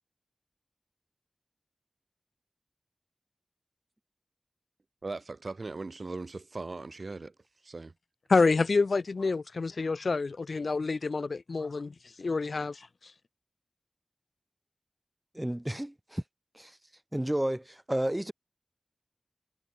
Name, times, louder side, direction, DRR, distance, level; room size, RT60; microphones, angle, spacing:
voice 1, 5.0-7.3 7.6-7.9, right 3 dB, 65° right, 1.3 m, -39 dB
voice 2, 8.3-11.9 12.2-12.7, left 4 dB, 80° left, 0.6 m, -27 dB
voice 3, 15.3-16.2 16.5-16.8 17.1-18.3, right 1 dB, 15° right, 1.5 m, -31 dB
wide cardioid pair, 50°, 0 cm